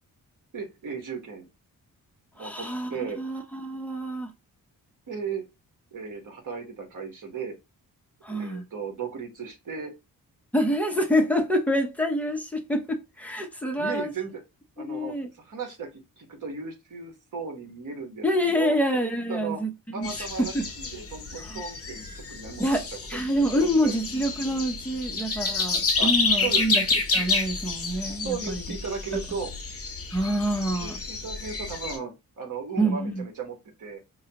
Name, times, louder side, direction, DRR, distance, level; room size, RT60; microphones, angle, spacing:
voice 1, 0.5-1.5 2.3-3.2 5.1-5.4 5.9-7.6 8.3-9.9 13.8-14.4 14.8-18.8 19.3-19.6 19.9-23.2 23.5-24.0 26.0-26.1 26.4-26.6 28.2-29.5 30.8-34.0, right 5 dB, 55° right, 1.3 m, -36 dB
voice 2, 2.4-2.9 3.2-4.3 8.2-8.6 10.5-14.1 14.9-15.3 18.2-20.7 21.5-21.6 22.6-22.8 23.1-26.8 27.1-28.6 30.1-31.0 32.8-33.2, equal, 5° left, 0.7 m, -27 dB
sound 1, 20.0-32.0, left 4 dB, 40° left, 0.9 m, -29 dB
4.8 x 2.3 x 2.9 m
wide cardioid pair, 140°, 36 cm